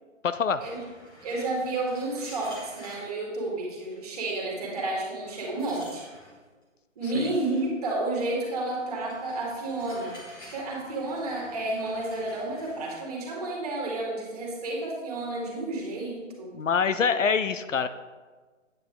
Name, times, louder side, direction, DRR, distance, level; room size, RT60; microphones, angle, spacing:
voice 1, 0.2-0.6 7.1-7.3 16.5-17.9, left 6 dB, 70° left, 12 dB, 0.7 m, -25 dB
sound 1, 0.6-3.1 3.9-4.2 4.6-4.7 5.1-6.4 7.0-7.7 8.4-13.0, equal, 15° left, 1.6 m, -50 dB
voice 2, 1.2-6.1 7.0-10.2 10.5-16.6, right 2 dB, 30° right, -1 dB, 2.2 m, -31 dB
9.1 x 8.3 x 3.9 m, 1.4 s
figure-of-eight pair, 160°, 39 cm